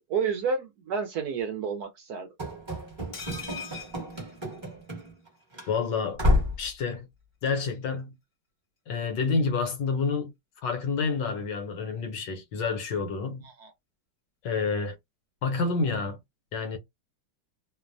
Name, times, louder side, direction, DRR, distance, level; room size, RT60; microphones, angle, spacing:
voice 1, 0.0-2.3 13.4-13.7, right 5 dB, 70° right, 1.0 m, -30 dB
Run / Slam, 2.4-5.3 5.5-5.7 6.2-6.7, left 1 dB, 20° right, 0.8 m, -29 dB
sound 1, 3.1-5.1 5.4-5.5 5.7-5.9, left 5 dB, 35° left, 0.8 m, -41 dB
voice 2, 5.7-6.2 6.6-7.1 7.4-8.1 8.9-10.3 10.6-13.4 14.4-15.0 15.4-16.2 16.5-16.8, left 4 dB, 70° left, 1.3 m, -28 dB
3.0 x 2.1 x 2.5 m
omnidirectional pair, 2.0 m